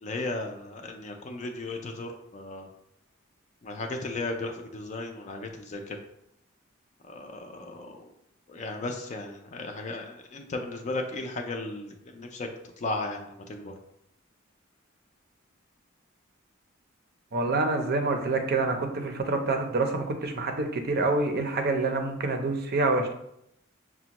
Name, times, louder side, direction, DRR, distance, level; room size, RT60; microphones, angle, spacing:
voice 1, 0.0-2.7 3.6-6.0 7.1-8.1 8.5-12.5 12.8-13.7, left 2 dB, 35° left, 3 dB, 0.4 m, -35 dB
voice 2, 17.3-23.1, right 3 dB, 50° right, 5 dB, 0.5 m, -27 dB
5.9 x 2.1 x 2.9 m, 0.79 s
head